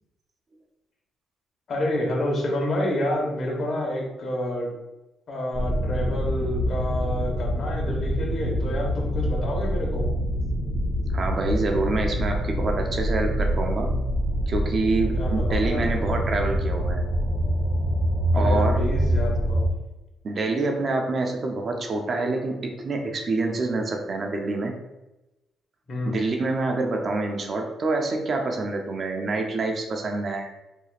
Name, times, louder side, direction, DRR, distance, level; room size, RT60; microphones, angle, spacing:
voice 1, 1.7-4.7 5.3-10.1 15.1-15.8 18.3-19.7 25.9-26.2, left 1 dB, 50° left, -1 dB, 1.3 m, -28 dB
sound 1, 5.5-19.7, equal, 15° left, 1.3 m, -25 dB
voice 2, 11.1-13.9 14.5-17.0 18.3-18.8 20.2-24.7 26.1-30.5, right 3 dB, 45° right, 3 dB, 0.6 m, -26 dB
4.5 x 2.9 x 2.5 m, 0.99 s
cardioid pair, 90°, 0 cm